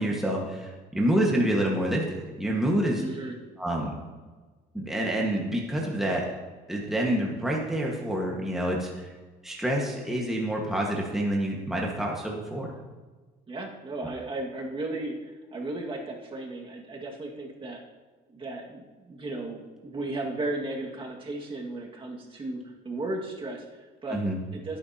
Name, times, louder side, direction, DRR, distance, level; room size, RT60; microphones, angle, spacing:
voice 1, 0.0-3.0 3.6-3.9 4.7-6.3 6.7-9.1 9.4-12.7 24.1-24.4, right 1 dB, ahead, -2 dB, 1.6 m, -27 dB
voice 2, 3.0-3.4 13.5-17.8 18.3-24.2 24.5-24.8, right 2 dB, 30° right, -1 dB, 2.0 m, -35 dB
16.5 x 9.1 x 2.9 m, 1.3 s
cardioid pair, 110°, 17 cm